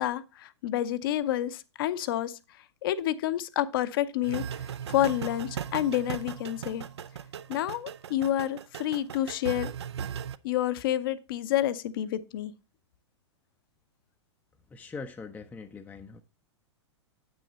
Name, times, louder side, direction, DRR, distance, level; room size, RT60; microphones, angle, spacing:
voice 1, 0.0-2.4 2.8-4.4 4.9-6.8 7.5-9.7 10.4-12.5, left 12 dB, 50° left, 0.6 m, -29 dB
sound 1, 4.2-10.4, right 8 dB, 65° right, 0.5 m, -38 dB
voice 2, 14.7-16.2, left 4 dB, 10° left, 0.5 m, -42 dB
8.4 x 6.3 x 4.0 m
figure-of-eight pair, 100°, 15 cm